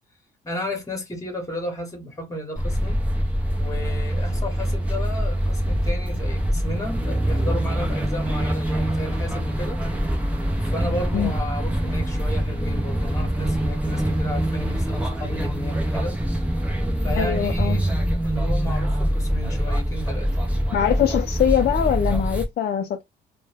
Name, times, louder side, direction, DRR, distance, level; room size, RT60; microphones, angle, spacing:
voice 1, 0.4-3.0 3.6-9.8 10.6-16.2 17.0-17.8 18.2-20.3, left 1 dB, 15° left, 1.1 m, -33 dB
sound 1, 2.6-22.5, equal, 5° right, 0.7 m, -24 dB
voice 2, 17.2-17.8 20.7-23.0, left 9 dB, 55° left, 0.4 m, -22 dB
2.1 x 2.1 x 3.3 m
cardioid pair, 90°, 20 cm